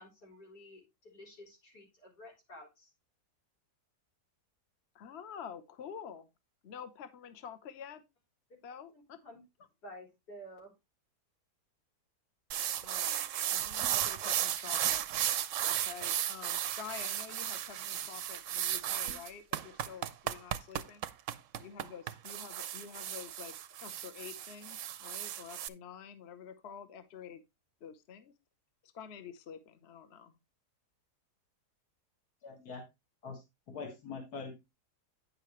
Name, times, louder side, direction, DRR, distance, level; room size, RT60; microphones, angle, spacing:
voice 1, 0.0-2.9 8.9-9.4 9.8-10.7, equal, 90° left, 4.1 m, -52 dB
voice 2, 4.9-6.3 6.6-8.0 8.6-9.2 12.8-15.0 15.7-21.0 21.6-23.5 23.8-27.4 27.8-28.3 28.8-30.4, left 7 dB, 50° left, 1.0 m, -48 dB
sound 1, 12.5-25.7, right 11 dB, 65° right, 0.8 m, -35 dB
voice 3, 32.4-32.8 33.2-34.6, left 4 dB, 70° left, 2.3 m, -43 dB
9.3 x 6.6 x 3.0 m
omnidirectional pair, 1.7 m